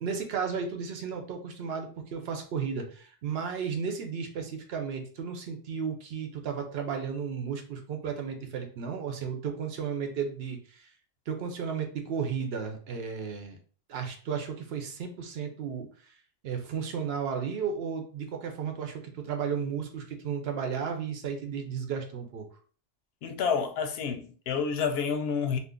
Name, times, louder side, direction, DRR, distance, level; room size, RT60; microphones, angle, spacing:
voice 1, 0.0-10.9 11.3-13.6 13.9-16.1 16.4-22.5, right 6 dB, 70° right, 0.9 m, -34 dB
voice 2, 23.2-25.6, left 6 dB, 70° left, 0.8 m, -29 dB
2.6 x 2.4 x 3.6 m
omnidirectional pair, 1.1 m